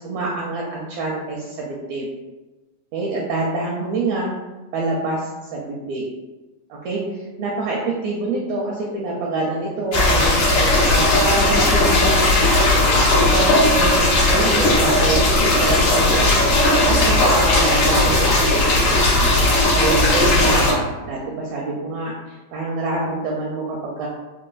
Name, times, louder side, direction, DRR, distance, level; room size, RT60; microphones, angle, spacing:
voice 1, 0.0-2.1 2.9-4.3 4.7-6.1 6.7-16.4 16.7-24.1, right 2 dB, 80° right, -3 dB, 1.6 m, -26 dB
sound 1, 9.9-20.7, left 2 dB, 70° left, 1.1 m, -16 dB
4.6 x 2.1 x 2.3 m, 1.1 s
omnidirectional pair, 3.3 m